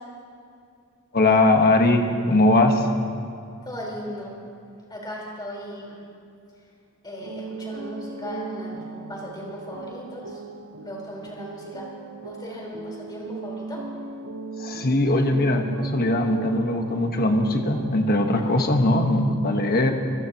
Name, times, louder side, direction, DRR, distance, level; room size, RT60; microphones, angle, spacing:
voice 1, 1.1-2.9 14.6-19.9, left 2 dB, 45° left, 4 dB, 1.3 m, -20 dB
voice 2, 3.6-4.3 4.9-6.0 7.0-8.8 9.1-10.4 10.8-11.9 12.2-13.8 18.3-18.7, equal, 20° left, -3 dB, 4.3 m, -37 dB
sound 1, 7.2-18.7, right 4 dB, 70° right, 0.8 m, -38 dB
27.5 x 17.5 x 3.0 m, 2.5 s
head